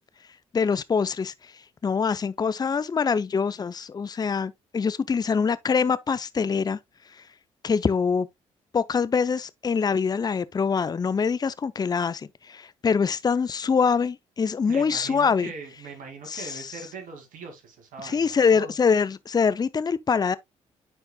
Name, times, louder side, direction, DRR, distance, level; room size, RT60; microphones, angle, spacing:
voice 1, 0.5-1.3 1.8-6.8 7.6-8.3 8.7-15.5 16.3-16.7 18.0-20.4, left 5 dB, 30° left, 0.5 m, -24 dB
voice 2, 14.7-18.7, right 4 dB, 70° right, 2.2 m, -41 dB
9.8 x 4.5 x 2.2 m
hypercardioid pair, 50°, 14 cm